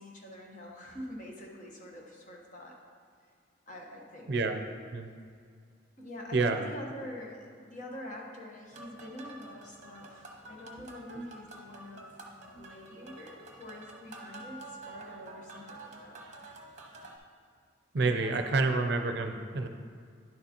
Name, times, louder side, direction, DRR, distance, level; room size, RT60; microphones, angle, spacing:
voice 1, 0.0-2.8 3.7-4.3 6.0-12.2 12.4-16.2 18.0-18.7 19.4-19.7, left 1 dB, 40° left, -1 dB, 1.1 m, -46 dB
voice 2, 4.3-4.6 4.9-5.1 6.3-6.6 11.1-11.3 12.5-12.6 17.9-19.7, right 3 dB, 60° right, 6 dB, 0.5 m, -28 dB
sound 1, 8.7-17.2, right 2 dB, 40° right, 0.9 m, -49 dB
10.5 x 6.6 x 2.9 m, 2.1 s
head